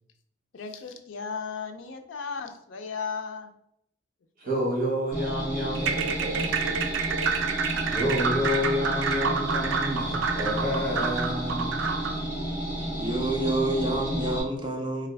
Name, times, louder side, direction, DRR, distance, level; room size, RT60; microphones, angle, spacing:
voice 1, 0.5-3.5, left 5 dB, 75° left, 6 dB, 0.4 m, -35 dB
voice 2, 4.4-5.9 6.3-6.4 7.8-11.8, equal, 45° right, -2 dB, 1.2 m, -29 dB
sound 1, 5.1-14.4, equal, 15° left, 1.3 m, -32 dB
sound 2, 5.7-12.2, right 5 dB, 75° right, 0.3 m, -29 dB
voice 3, 13.0-15.1, right 1 dB, 25° right, 1 dB, 0.6 m, -28 dB
3.9 x 2.3 x 3.3 m, 0.75 s
head